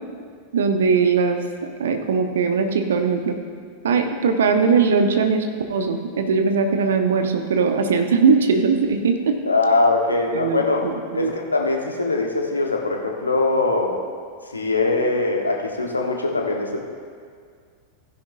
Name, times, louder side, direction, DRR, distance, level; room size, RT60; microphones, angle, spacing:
voice 1, 0.5-1.4 1.8-3.4 3.8-9.3 10.3-11.3, right 5 dB, 65° right, 6 dB, 1.0 m, -20 dB
voice 2, 9.5-10.9 11.1-14.0 14.5-16.8, left 3 dB, 80° left, 1 dB, 1.2 m, -22 dB
15.5 x 10.5 x 2.6 m, 2.2 s
figure-of-eight pair, 90°, 0 cm